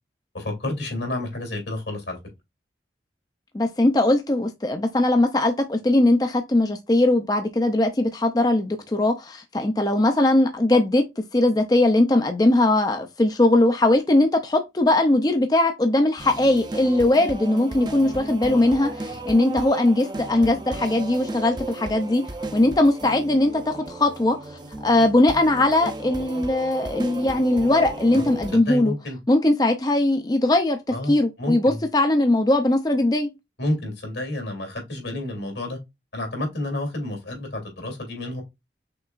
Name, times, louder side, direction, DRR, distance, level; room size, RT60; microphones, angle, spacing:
voice 1, 0.3-2.2 19.1-19.2 28.1-29.2 30.9-31.8 33.6-35.8 36.1-38.4, left 1 dB, 80° left, 2.6 m, -30 dB
voice 2, 3.5-11.0 11.3-22.2 22.5-28.9 29.3-30.8 31.1-33.3, left 1 dB, 20° left, 0.5 m, -20 dB
sound 1, 16.2-28.6, right 2 dB, 25° right, 0.6 m, -34 dB
5.9 x 3.5 x 2.4 m
head